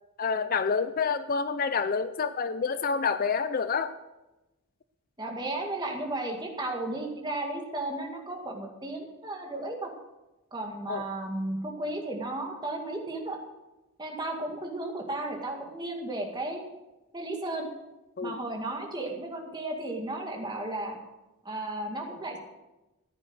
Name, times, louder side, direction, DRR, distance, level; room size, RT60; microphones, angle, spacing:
voice 1, 0.2-3.9 10.9-11.0 18.2-18.4, left 5 dB, 40° left, 12 dB, 0.5 m, -28 dB
voice 2, 5.2-9.9 10.5-13.4 14.0-16.6 17.1-17.7 18.2-21.0 21.4-22.4, right 2 dB, 20° right, 1 dB, 2.1 m, -34 dB
14.5 x 9.8 x 6.4 m, 1.0 s
head